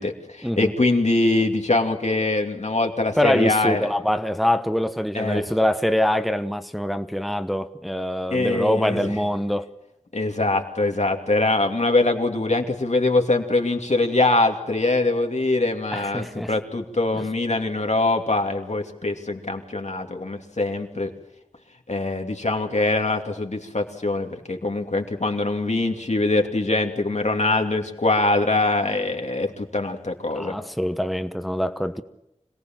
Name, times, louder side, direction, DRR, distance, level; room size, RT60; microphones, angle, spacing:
voice 1, 0.0-3.9 5.1-5.4 8.3-9.1 10.1-21.1 21.9-30.5, left 2 dB, 75° left, 2.8 m, -23 dB
voice 2, 3.2-9.7 15.9-16.5 17.1-17.2 30.3-32.0, left 1 dB, ahead, 1.1 m, -24 dB
26.0 x 18.0 x 7.5 m
wide cardioid pair, 55°, 12 cm